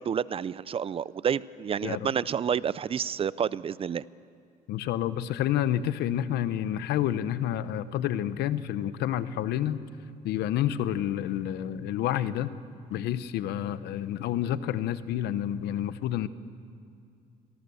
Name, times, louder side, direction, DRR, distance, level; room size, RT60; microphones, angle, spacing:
voice 1, 0.0-4.0, right 7 dB, 35° right, 19 dB, 0.4 m, -29 dB
voice 2, 4.7-9.8 10.2-12.6 12.9-16.3, left 11 dB, 80° left, 14 dB, 0.9 m, -29 dB
26.5 x 19.0 x 7.0 m, 2.4 s
cardioid pair, 110°, 17 cm